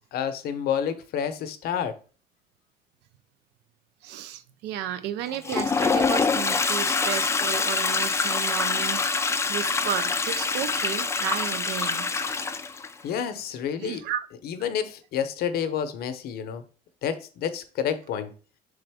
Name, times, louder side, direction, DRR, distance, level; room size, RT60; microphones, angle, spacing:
voice 1, 0.1-1.9 13.0-14.0 14.4-16.6 17.0-18.3, left 8 dB, 70° left, 0.6 m, -29 dB
voice 2, 4.0-12.1 13.8-14.3, right 11 dB, 85° right, 0.4 m, -33 dB
Toilet flush, 5.3-12.9, left 4 dB, 15° left, 0.4 m, -25 dB
3.9 x 3.4 x 3.4 m
cardioid pair, 110°, 17 cm